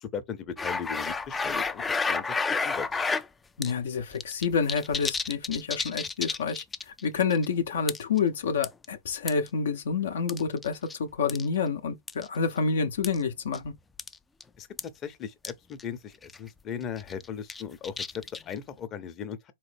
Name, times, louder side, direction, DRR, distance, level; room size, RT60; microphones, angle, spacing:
voice 1, 0.0-2.4 2.6-2.9 14.6-14.7 14.9-19.5, left 7 dB, 30° left, 0.7 m, -38 dB
sound 1, 0.6-3.3 3.6-3.7 4.0-7.0 7.3-7.5 7.9-8.2 8.6-9.5 10.3-11.0 11.3-11.5 12.1-12.3 13.0-13.2 13.5-13.7 14.0-14.2 14.4-14.5 14.8-14.9 15.4-15.5 15.8-15.9 16.2-16.5 17.0-18.6, left 4 dB, 10° left, 0.3 m, -31 dB
voice 2, 3.6-13.7, left 5 dB, 70° left, 0.6 m, -28 dB
3.9 x 3.0 x 3.3 m
hypercardioid pair, 110°, 0 cm